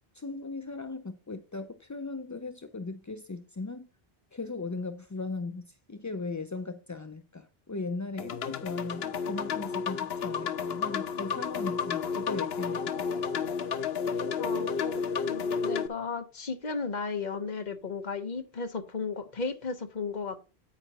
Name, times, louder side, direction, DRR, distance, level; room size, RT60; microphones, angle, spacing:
voice 1, 0.1-3.9 4.3-13.0, left 3 dB, 25° left, 0.4 m, -38 dB
sound 1, 8.2-15.9, left 6 dB, 75° left, 1.0 m, -31 dB
voice 2, 14.4-20.4, left 4 dB, 45° left, 1.2 m, -35 dB
9.6 x 8.7 x 2.9 m
omnidirectional pair, 1.1 m